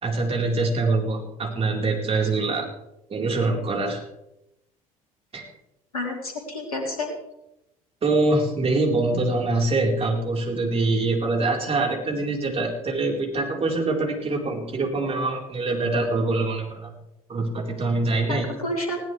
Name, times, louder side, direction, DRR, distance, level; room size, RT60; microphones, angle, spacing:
voice 1, 0.0-2.7 3.1-4.0 5.3-5.5 8.0-16.9 17.3-18.5, right 2 dB, 30° right, 1 dB, 4.3 m, -24 dB
voice 2, 5.9-7.1 18.3-19.0, left 1 dB, 85° left, 1 dB, 3.3 m, -29 dB
20.5 x 17.0 x 3.4 m, 0.87 s
figure-of-eight pair, 60°, 18 cm